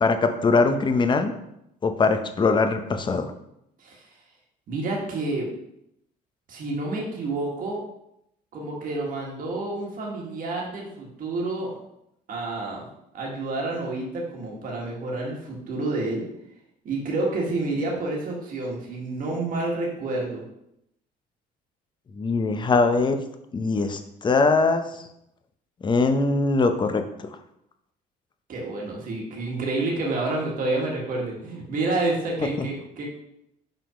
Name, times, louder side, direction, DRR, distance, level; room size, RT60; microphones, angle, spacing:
voice 1, 0.0-1.3 1.8-3.3 22.1-23.2 23.5-25.0 25.8-27.3 32.6-32.7, left 3 dB, 25° left, 7 dB, 0.7 m, -22 dB
voice 2, 4.7-5.5 6.5-7.8 8.5-11.7 12.3-12.9 13.1-16.2 16.8-20.4 28.5-33.0, right 2 dB, 55° right, -2 dB, 1.5 m, -29 dB
5.5 x 3.7 x 4.9 m, 0.80 s
cardioid pair, 110°, 17 cm